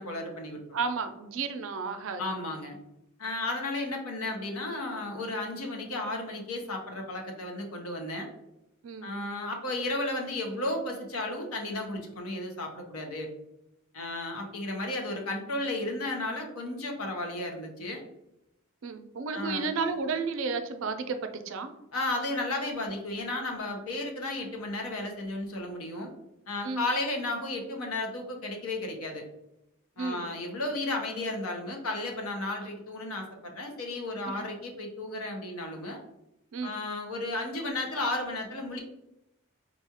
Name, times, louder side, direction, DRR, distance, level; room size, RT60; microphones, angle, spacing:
voice 1, 0.0-0.6 2.2-2.8 3.2-8.3 9.0-13.3 13.9-18.0 19.3-19.7 21.9-26.1 26.5-29.3 30.0-36.0 36.6-38.8, left 2 dB, 90° left, 2 dB, 0.8 m, -33 dB
voice 2, 0.7-2.2 8.8-9.1 18.8-21.7 26.6-26.8 30.0-30.3 36.5-36.8, right 4 dB, 65° right, 8 dB, 0.4 m, -32 dB
4.1 x 2.3 x 2.8 m, 0.88 s
head